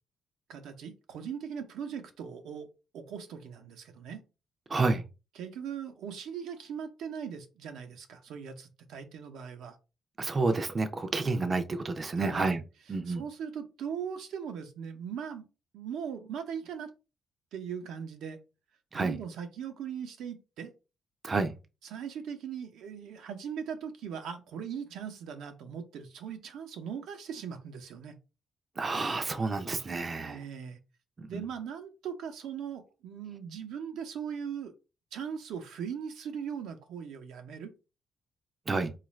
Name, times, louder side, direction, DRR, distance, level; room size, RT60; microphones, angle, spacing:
voice 1, 0.5-2.7 2.9-4.2 5.3-9.8 11.1-11.3 12.0-12.6 13.1-15.5 15.7-16.9 17.5-18.4 18.9-20.7 21.8-28.2 30.2-30.8 31.3-34.7 35.1-37.7, right 7 dB, 80° right, 0.7 m, -39 dB
voice 2, 4.7-5.0 10.2-12.6 12.9-13.2 18.9-19.2 21.2-21.5 28.8-30.4 31.2-31.4 38.7-38.9, right 3 dB, 35° right, 0.5 m, -29 dB
4.0 x 2.4 x 3.1 m
cardioid pair, 90°, 0 cm